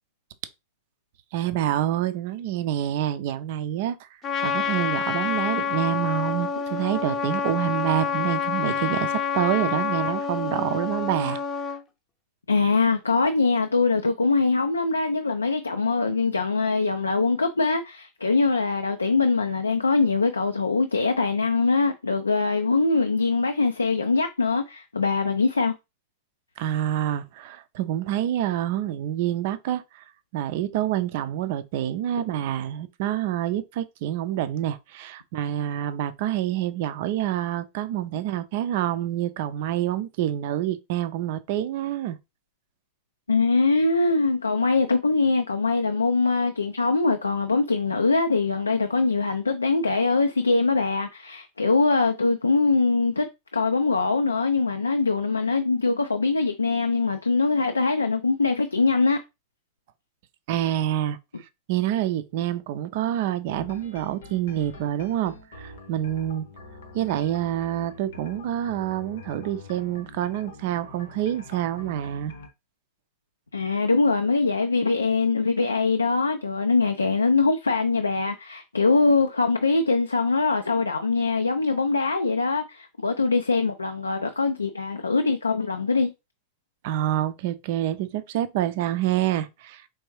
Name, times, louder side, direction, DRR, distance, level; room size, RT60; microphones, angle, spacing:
voice 1, 1.3-4.1 4.4-11.4 26.6-30.0 30.3-42.2 60.5-61.2 61.7-66.4 66.9-72.3 86.8-89.8, right 12 dB, 50° right, 0.4 m, -27 dB
Trumpet, 4.2-11.8, left 6 dB, 25° left, 0.6 m, -27 dB
voice 2, 12.5-25.7 43.3-53.3 53.5-59.2 73.5-86.1, left 3 dB, 80° left, 0.4 m, -23 dB
sound 1, 63.5-72.5, left 3 dB, 60° left, 0.8 m, -45 dB
4.6 x 3.4 x 3.0 m
figure-of-eight pair, 90°, 0 cm